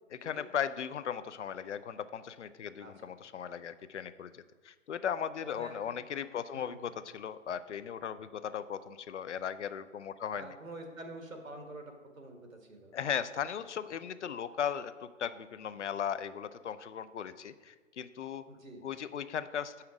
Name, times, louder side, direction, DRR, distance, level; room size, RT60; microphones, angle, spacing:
voice 1, 0.1-10.6 12.9-18.4 18.8-19.8, left 8 dB, 65° left, 13 dB, 0.5 m, -37 dB
voice 2, 2.8-3.1 5.4-5.8 6.5-6.8 10.3-12.9 18.5-18.8, right 1 dB, 85° right, 4 dB, 1.6 m, -47 dB
7.8 x 5.7 x 4.9 m, 1.4 s
figure-of-eight pair, 130°, 39 cm